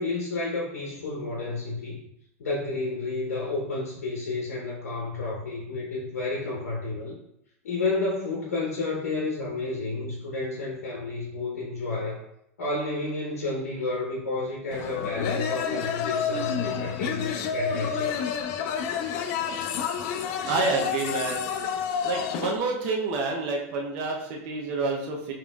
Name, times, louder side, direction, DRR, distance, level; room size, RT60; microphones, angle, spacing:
voice 1, 0.0-2.0 2.4-7.2 7.6-12.2 12.6-18.2, left 3 dB, 80° left, -3 dB, 0.8 m, -31 dB
sound 1, 14.7-22.6, left 7 dB, 55° left, 0.4 m, -29 dB
voice 2, 20.4-21.5 22.0-25.3, right 3 dB, 55° right, 0 dB, 0.7 m, -28 dB
5.0 x 3.0 x 2.3 m, 0.76 s
hypercardioid pair, 100°, 8 cm